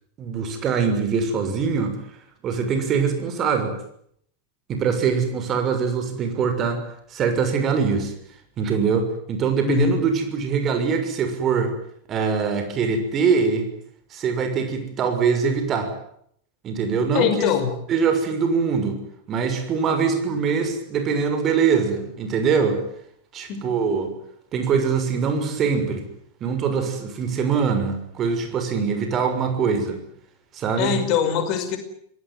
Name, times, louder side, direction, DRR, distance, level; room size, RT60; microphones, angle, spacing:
voice 1, 0.2-1.9 2.4-3.8 4.7-6.8 7.1-8.1 8.6-11.7 12.1-13.7 14.1-15.9 16.6-17.5 17.9-19.0 19.3-22.8 23.3-24.1 24.5-26.0 26.4-30.0 30.5-30.9, right 5 dB, 30° right, 7 dB, 6.6 m, -23 dB
voice 2, 9.6-10.0 17.1-17.7 23.5-23.7 30.8-31.8, left 8 dB, 40° left, 9 dB, 5.4 m, -22 dB
27.0 x 19.0 x 9.4 m, 0.68 s
figure-of-eight pair, 90°, 0 cm